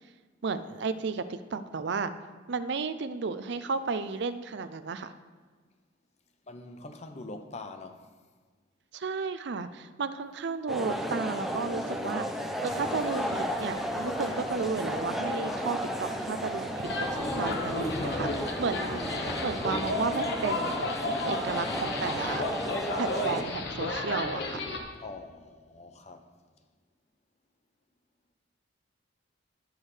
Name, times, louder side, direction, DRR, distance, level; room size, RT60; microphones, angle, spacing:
voice 1, 0.4-2.1 2.5-5.1 8.9-12.3 12.6-22.4 23.0-24.6, right 4 dB, 60° right, 0.5 m, -33 dB
voice 2, 6.5-8.1 25.0-26.3, left 2 dB, 35° left, 0.7 m, -43 dB
sound 1, 10.7-23.4, equal, ahead, 0.6 m, -34 dB
sound 2, 12.6-19.6, left 2 dB, 90° left, 0.8 m, -49 dB
sound 3, 16.8-24.8, left 2 dB, 60° left, 1.1 m, -32 dB
18.0 x 6.4 x 3.3 m
head